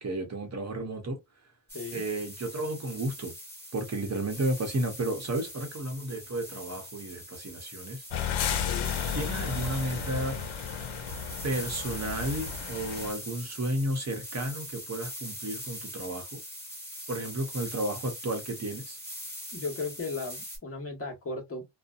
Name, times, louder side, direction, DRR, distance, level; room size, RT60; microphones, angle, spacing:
voice 1, 0.0-1.2 1.9-3.3 3.7-8.0 9.1-10.4 11.4-16.4 17.1-19.0, right 1 dB, 35° right, 0.9 m, -32 dB
sound 1, 1.7-20.6, equal, 5° left, 1.5 m, -42 dB
sound 2, 8.1-13.1, left 7 dB, 75° left, 0.7 m, -33 dB
voice 2, 19.5-21.6, left 3 dB, 30° left, 1.2 m, -36 dB
2.6 x 2.2 x 2.4 m
cardioid pair, 90°, 48 cm